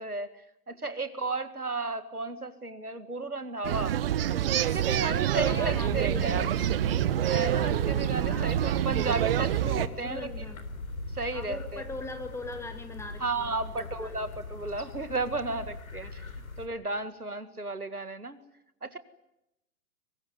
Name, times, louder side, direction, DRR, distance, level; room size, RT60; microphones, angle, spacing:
voice 1, 0.0-4.0 4.6-6.5 7.3-10.3 11.1-11.8 13.2-16.3 16.6-18.4 18.8-19.0, right 3 dB, 90° right, 12 dB, 2.0 m, -34 dB
sound 1, 3.6-9.9, right 11 dB, 40° right, 1.2 m, -27 dB
voice 2, 5.4-6.7 8.3-8.5 9.9-10.7 11.3-14.3, left 2 dB, 5° left, 6 dB, 2.4 m, -41 dB
sound 2, 5.5-16.7, left 3 dB, 70° left, 3.8 m, -41 dB
23.5 x 20.5 x 9.7 m, 0.88 s
figure-of-eight pair, 120°, 43 cm